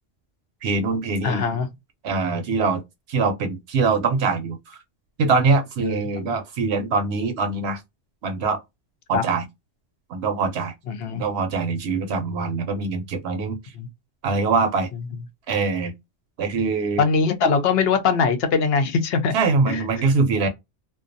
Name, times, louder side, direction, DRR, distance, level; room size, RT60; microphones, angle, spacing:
voice 1, 0.6-1.5 2.0-2.8 3.1-4.8 5.2-7.8 8.2-8.6 9.1-9.4 10.1-10.7 11.2-13.7 14.2-14.9 15.5-15.9 16.4-17.0 19.3-20.5, right 4 dB, 70° right, 0.8 m, -23 dB
voice 2, 1.2-1.7 5.8-6.3 9.1-9.2 10.9-11.2 13.8-13.9 17.0-19.3 19.7-19.8, left 5 dB, 65° left, 0.7 m, -22 dB
2.3 x 2.2 x 2.5 m
omnidirectional pair, 1.2 m